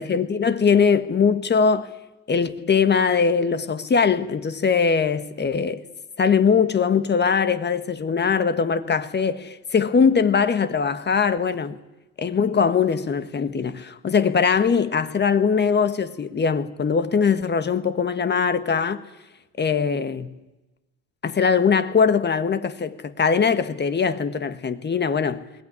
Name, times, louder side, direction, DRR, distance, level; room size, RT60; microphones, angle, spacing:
voice 1, 0.0-1.9 2.3-5.9 6.2-11.8 12.2-19.0 19.6-20.3 21.2-25.4, left 6 dB, 30° left, 1.6 m, -21 dB
21.0 x 19.0 x 9.9 m
supercardioid pair, 105°, 37 cm